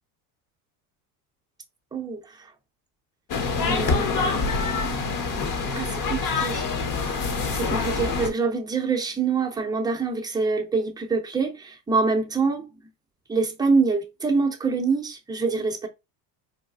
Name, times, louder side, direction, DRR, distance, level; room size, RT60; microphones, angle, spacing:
voice 1, 1.9-2.2 3.6-4.4 5.7-6.7 7.5-12.7 13.3-15.9, right 4 dB, 10° right, 0.6 m, -25 dB
sound 1, 3.3-8.3, left 4 dB, 40° left, 0.9 m, -26 dB
4.1 x 2.3 x 2.3 m
supercardioid pair, 90°, 49 cm